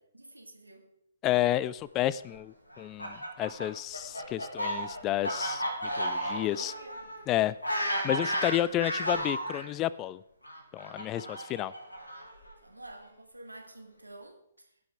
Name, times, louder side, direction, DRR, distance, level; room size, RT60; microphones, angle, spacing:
voice 1, 0.1-0.9 6.3-7.1 12.6-14.7, right 1 dB, 85° right, 1.9 m, -49 dB
voice 2, 1.2-5.6 5.9-6.7 7.3-7.5 8.0-10.2 10.7-11.7, left 14 dB, 20° left, 0.3 m, -30 dB
Fowl, 2.7-9.6 10.4-12.5, equal, 85° left, 2.8 m, -33 dB
16.0 x 6.0 x 4.6 m
figure-of-eight pair, 130°, 0 cm